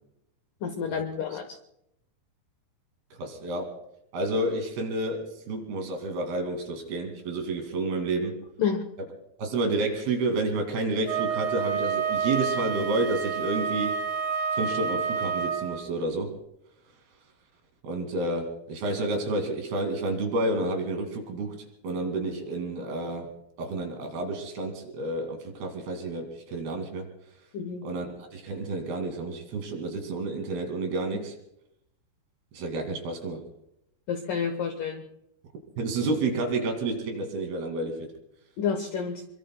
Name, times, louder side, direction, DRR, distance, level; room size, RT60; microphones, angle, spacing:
voice 1, 0.6-1.6 8.6-8.8 27.5-27.8 34.1-35.0 38.6-39.2, left 6 dB, 75° left, 6 dB, 2.0 m, -29 dB
voice 2, 3.2-3.8 4.1-8.4 9.4-14.0 14.5-16.3 17.8-21.5 21.8-23.3 23.6-27.1 27.8-28.1 28.3-31.3 32.5-33.4 35.8-38.1, right 2 dB, 65° right, 4 dB, 4.1 m, -30 dB
Wind instrument woodwind instrument, 11.0-15.9, right 6 dB, 80° right, 4.0 m, -29 dB
26.5 x 23.0 x 2.2 m, 0.80 s
omnidirectional pair, 5.1 m